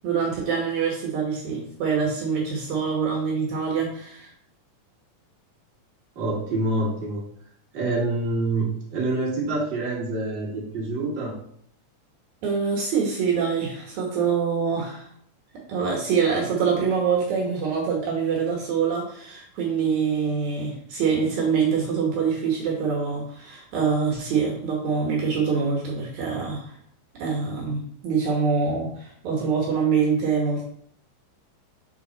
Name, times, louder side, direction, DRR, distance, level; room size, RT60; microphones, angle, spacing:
voice 1, 0.0-4.3 12.4-15.1 15.7-26.7 27.2-30.6, right 6 dB, 70° right, -2 dB, 2.5 m, -25 dB
voice 2, 6.2-7.2 7.7-11.3, right 2 dB, 40° right, -5 dB, 2.3 m, -26 dB
6.9 x 4.1 x 3.9 m, 0.66 s
omnidirectional pair, 3.6 m